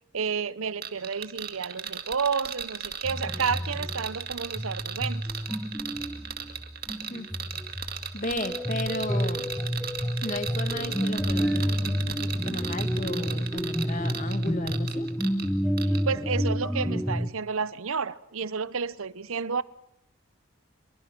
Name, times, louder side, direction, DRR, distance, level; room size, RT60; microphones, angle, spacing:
voice 1, 0.1-5.2 15.9-19.6, right 5 dB, 70° right, 0.8 m, -31 dB
sound 1, 0.8-15.5 15.8-16.0, right 8 dB, 45° right, 2.0 m, -36 dB
sound 2, 3.0-17.3, equal, ahead, 1.1 m, -30 dB
voice 2, 8.1-9.5 10.2-15.1, left 2 dB, 35° left, 1.7 m, -34 dB
Guitar, 10.7-15.3, equal, 80° left, 6.1 m, -43 dB
25.5 x 23.5 x 6.0 m
head